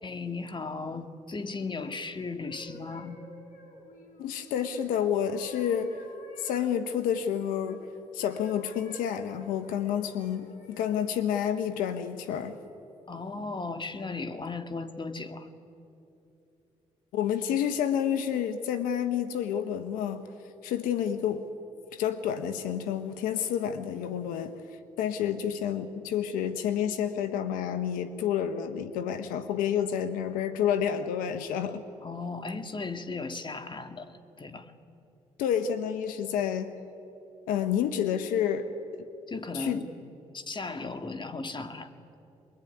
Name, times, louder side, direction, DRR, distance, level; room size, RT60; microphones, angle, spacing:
voice 1, 0.0-3.2 13.1-15.5 32.0-34.7 39.3-39.9 40.3-41.9, left 3 dB, 35° left, 7 dB, 2.2 m, -36 dB
sound 1, 2.4-7.8 8.2-11.1 11.7-12.0, left 1 dB, 70° left, 4.7 m, -51 dB
voice 2, 4.2-6.0 6.4-7.9 8.1-12.6 17.1-20.3 20.6-21.4 21.9-31.8 35.4-36.7 37.5-39.0 39.5-39.8, left 9 dB, 85° left, 10 dB, 1.0 m, -29 dB
24.0 x 22.0 x 9.8 m, 2.8 s
supercardioid pair, 55°, 14 cm